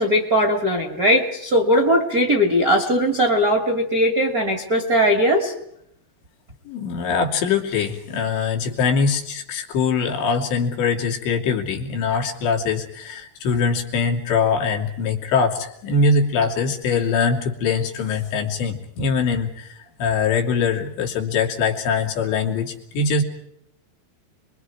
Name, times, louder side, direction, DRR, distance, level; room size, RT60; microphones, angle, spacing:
voice 1, 0.0-5.5, equal, 25° right, 4 dB, 2.1 m, -19 dB
voice 2, 6.7-23.2, left 5 dB, 80° left, 1 dB, 4.8 m, -22 dB
30.0 x 22.5 x 4.8 m, 0.74 s
omnidirectional pair, 5.1 m